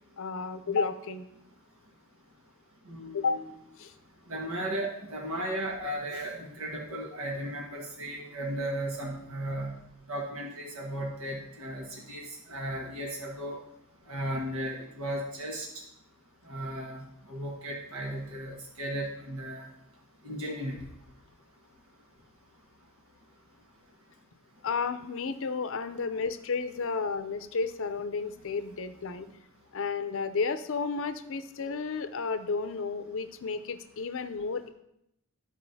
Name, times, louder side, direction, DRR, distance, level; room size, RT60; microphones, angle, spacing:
voice 1, 0.2-1.3 3.1-3.4 3.8-3.9 24.6-29.3 29.7-34.7, left 4 dB, 60° left, 10 dB, 0.6 m, -32 dB
voice 2, 2.9-3.5 4.3-9.8 10.1-12.2 12.5-13.6 14.1-15.7 16.5-19.7 20.2-20.8, right 1 dB, 70° right, -1 dB, 1.5 m, -35 dB
13.5 x 4.8 x 2.8 m, 0.78 s
head